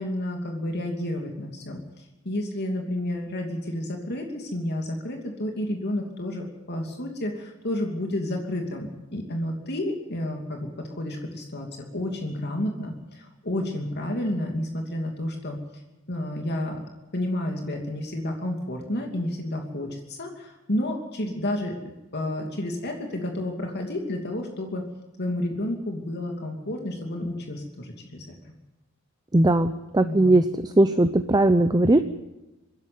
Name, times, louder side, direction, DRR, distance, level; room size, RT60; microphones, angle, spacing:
voice 1, 0.0-1.8 2.2-15.6 16.1-16.8 17.1-21.7 22.1-24.8 25.2-28.3 30.0-30.3, left 1 dB, 55° left, 2 dB, 2.8 m, -30 dB
voice 2, 29.3-30.5 30.8-32.0, right 1 dB, 20° right, 10 dB, 0.7 m, -19 dB
26.0 x 11.0 x 9.3 m, 1.0 s
head